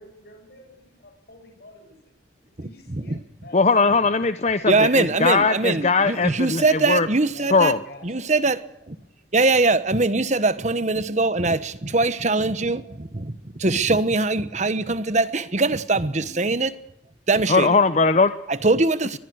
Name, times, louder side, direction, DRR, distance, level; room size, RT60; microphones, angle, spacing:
voice 1, 0.0-2.1 2.4-4.1 4.4-4.7 7.3-8.4, left 1 dB, 55° left, 7.5 m, -48 dB
voice 2, 2.6-3.2 4.7-7.7 8.0-8.6 8.9-9.0 9.3-16.7 17.3-17.8 18.5-19.2, right 3 dB, 40° right, 1.2 m, -22 dB
voice 3, 3.5-7.1 7.5-7.8 17.5-18.3, left 4 dB, 35° left, 0.7 m, -19 dB
23.5 x 20.5 x 6.4 m
head